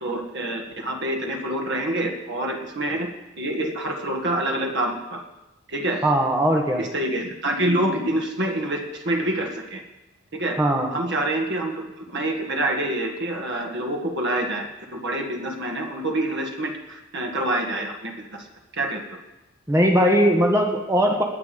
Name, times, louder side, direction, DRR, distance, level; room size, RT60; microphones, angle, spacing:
voice 1, 0.0-3.1 3.4-5.2 5.7-6.0 6.8-9.8 10.3-10.6 10.9-14.7 14.9-18.4 18.7-19.2 21.1-21.2, right 1 dB, 50° right, 2 dB, 1.8 m, -27 dB
voice 2, 6.0-6.8 10.6-10.9 19.7-21.2, equal, 15° right, 0 dB, 1.5 m, -19 dB
19.5 x 9.6 x 5.3 m, 0.99 s
head